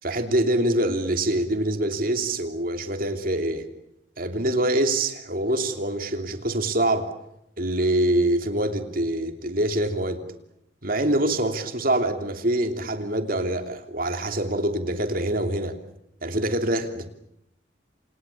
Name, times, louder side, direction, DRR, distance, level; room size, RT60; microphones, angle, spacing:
voice 1, 0.0-3.7 4.2-7.1 7.6-10.2 10.8-15.8 16.2-17.1, right 1 dB, 45° right, 7 dB, 3.0 m, -25 dB
28.0 x 28.0 x 7.2 m, 0.81 s
head